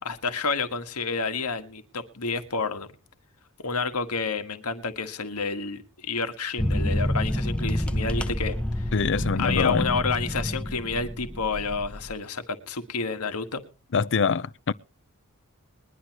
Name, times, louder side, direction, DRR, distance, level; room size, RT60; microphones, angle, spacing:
voice 1, 0.0-2.9 3.6-8.9 9.3-13.6, left 4 dB, 90° left, 1.7 m, -30 dB
sound 1, 6.6-12.1, left 1 dB, 5° left, 0.7 m, -28 dB
voice 2, 8.9-9.8 13.9-14.7, left 5 dB, 55° left, 0.6 m, -24 dB
21.5 x 11.5 x 3.0 m
head